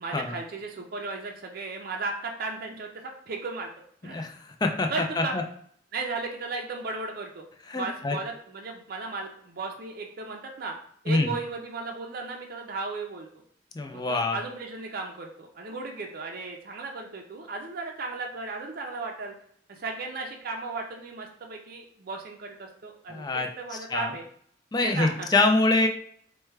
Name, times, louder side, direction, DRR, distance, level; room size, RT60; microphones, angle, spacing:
voice 1, 0.0-3.7 4.0-4.2 4.9-5.4 5.9-7.5 7.7-10.7 11.0-13.3 13.9-19.3 19.7-24.2 24.8-25.3, right 3 dB, 55° right, 1 dB, 0.5 m, -35 dB
voice 2, 4.1-4.9 5.2-5.4 7.7-8.2 11.1-11.3 13.7-14.4 23.1-23.5 23.9-24.1 24.7-25.9, left 2 dB, 25° left, 4 dB, 0.4 m, -25 dB
4.5 x 2.2 x 3.2 m, 0.62 s
head